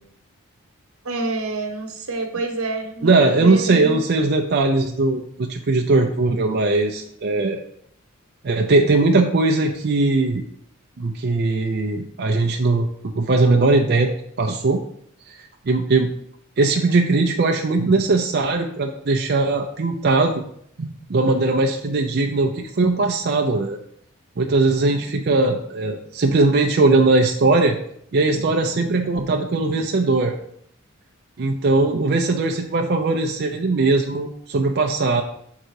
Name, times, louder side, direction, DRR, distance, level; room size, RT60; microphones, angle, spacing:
voice 1, 1.0-4.0, right 2 dB, 85° right, 5 dB, 1.1 m, -27 dB
voice 2, 3.0-7.6 8.4-10.4 11.0-14.8 15.7-16.1 16.6-20.4 20.8-23.8 24.4-27.8 28.1-30.3 31.4-35.2, right 3 dB, 50° right, 2 dB, 0.5 m, -19 dB
6.4 x 3.8 x 4.6 m, 0.68 s
head